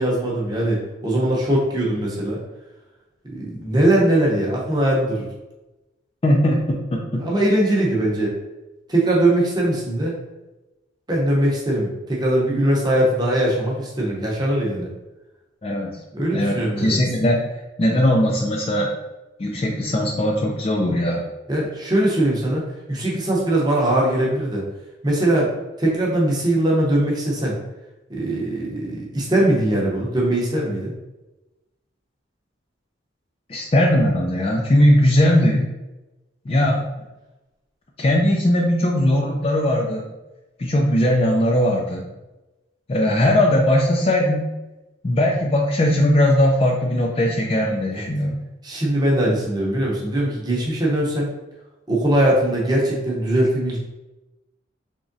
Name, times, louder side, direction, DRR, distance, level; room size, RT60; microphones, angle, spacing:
voice 1, 0.0-2.4 3.2-5.2 7.2-8.3 8.9-10.2 11.1-14.9 16.1-17.0 21.5-22.6 22.9-24.6 25.0-25.5 25.8-27.5 28.1-30.9 36.7-36.8 47.9-48.1 48.6-51.3 51.9-53.8, right 1 dB, 20° right, -3 dB, 0.7 m, -21 dB
voice 2, 6.2-7.2 15.6-16.0 16.3-17.4 17.8-18.9 19.4-21.2 33.5-35.7 36.5-36.8 38.0-40.1 40.6-42.1 42.9-44.5 45.0-48.4, left 1 dB, 30° left, 0 dB, 0.3 m, -19 dB
3.6 x 3.0 x 2.6 m, 1.0 s
head